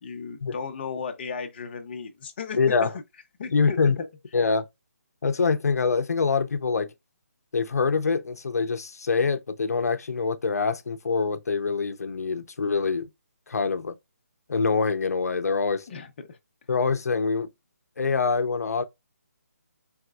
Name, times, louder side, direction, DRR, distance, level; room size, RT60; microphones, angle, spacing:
voice 1, 0.0-2.9 3.4-4.1 15.9-16.4, left 5 dB, 35° left, 0.8 m, -35 dB
voice 2, 2.6-2.9 3.5-4.0 4.3-4.6 5.2-6.9 7.5-13.1 13.5-13.9 14.5-15.9 16.7-17.5 18.0-18.8, left 4 dB, 70° left, 0.7 m, -25 dB
4.5 x 3.2 x 2.4 m
hypercardioid pair, 165°, 9 cm